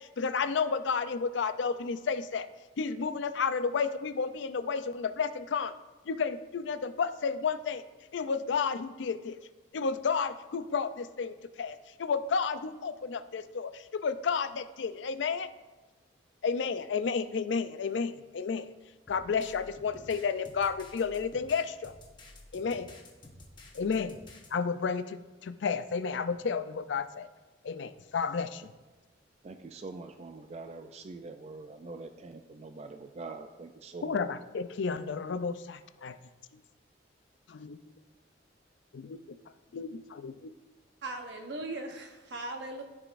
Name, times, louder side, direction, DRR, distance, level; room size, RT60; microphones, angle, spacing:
voice 1, 0.0-2.5 2.8-5.7 6.1-7.8 8.1-9.4 9.7-15.5 16.4-18.7 19.1-21.9 22.5-22.9 23.7-24.1 24.5-27.3 27.6-28.7 34.0-36.2 37.5-37.8 38.9-39.2 39.7-40.5, left 5 dB, 75° left, 12 dB, 0.4 m, -32 dB
sound 1, 19.1-24.5, left 2 dB, 25° left, 1.0 m, -52 dB
voice 2, 29.4-34.2, right 3 dB, 35° right, 7 dB, 0.3 m, -44 dB
voice 3, 41.0-42.8, right 2 dB, 70° right, 3 dB, 1.0 m, -38 dB
13.0 x 4.9 x 2.5 m, 1.2 s
head